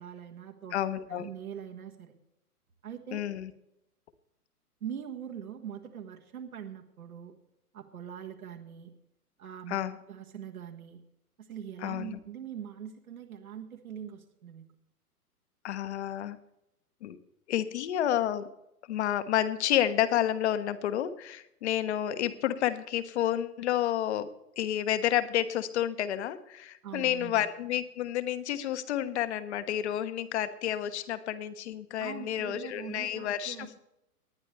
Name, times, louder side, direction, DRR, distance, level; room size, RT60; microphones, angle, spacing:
voice 1, 0.0-0.7 1.1-2.1 2.8-3.3 4.8-7.3 7.7-8.9 9.4-9.8 10.1-11.0 11.5-14.7 26.8-27.5 32.0-33.9, right 8 dB, 65° right, 3 dB, 1.7 m, -42 dB
voice 2, 0.7-1.3 3.1-3.5 9.7-10.0 11.8-12.2 15.6-16.4 17.0-17.2 17.5-18.5 18.9-24.3 24.6-33.7, left 11 dB, 45° left, 13 dB, 1.1 m, -30 dB
19.0 x 11.0 x 3.3 m, 0.84 s
figure-of-eight pair, 110°, 46 cm